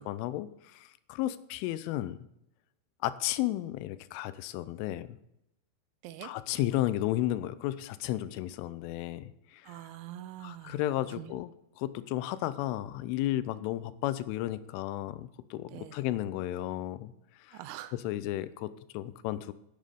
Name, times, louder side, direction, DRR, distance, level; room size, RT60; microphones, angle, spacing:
voice 1, 0.0-2.2 3.0-5.2 6.2-9.8 10.4-11.5 11.8-17.1 17.5-17.6 18.0-19.5, left 14 dB, 85° left, 15 dB, 3.1 m, -33 dB
voice 2, 9.6-10.8 11.1-11.4 15.7-16.0 17.5-18.0, right 13 dB, 80° right, 13 dB, 2.8 m, -44 dB
11.5 x 9.5 x 5.2 m, 0.84 s
omnidirectional pair, 5.6 m